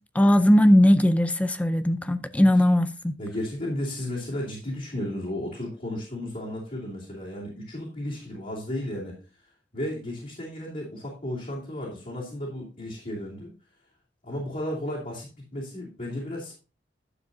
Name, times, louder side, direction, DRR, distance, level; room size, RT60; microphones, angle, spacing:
voice 1, 0.1-3.1, equal, 10° left, 0.4 m, -19 dB
voice 2, 3.2-9.2 9.7-13.5 14.2-16.5, left 1 dB, 45° left, 3.0 m, -34 dB
11.5 x 7.3 x 2.7 m
head